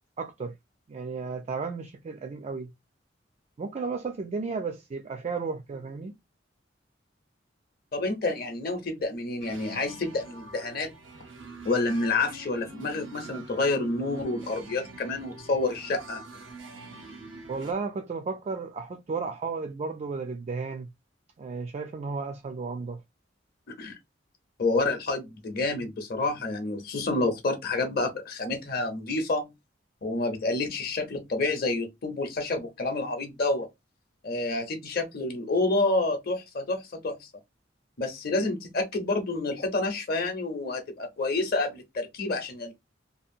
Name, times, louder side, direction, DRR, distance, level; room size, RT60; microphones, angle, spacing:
voice 1, 0.2-0.5 0.9-2.7 3.6-6.1 17.5-20.9 21.4-23.0, right 4 dB, 35° right, 0.3 m, -33 dB
voice 2, 7.9-10.9 11.6-16.2 23.8-24.0 24.6-29.5 30.0-33.7 34.2-37.2 38.0-42.7, left 2 dB, 55° left, 0.7 m, -28 dB
sound 1, 9.4-17.7, right 3 dB, 80° right, 0.6 m, -45 dB
2.7 x 2.5 x 2.6 m
head